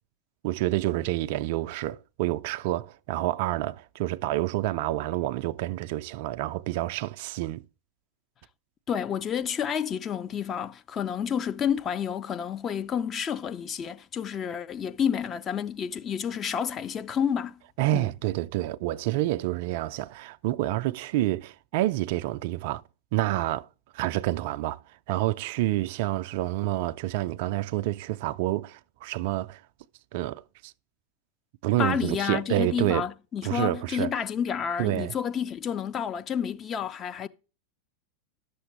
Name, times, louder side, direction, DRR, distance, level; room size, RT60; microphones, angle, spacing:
voice 1, 0.4-7.6 17.8-22.8 23.1-23.7 23.9-24.8 25.1-29.6 30.1-30.7 31.6-33.1 33.4-34.1 34.8-35.1, right 15 dB, 50° right, 0.3 m, -28 dB
voice 2, 8.9-17.6 17.9-18.1 31.8-37.3, left 8 dB, 25° left, 0.5 m, -30 dB
11.5 x 6.8 x 3.2 m
figure-of-eight pair, 90°, 0 cm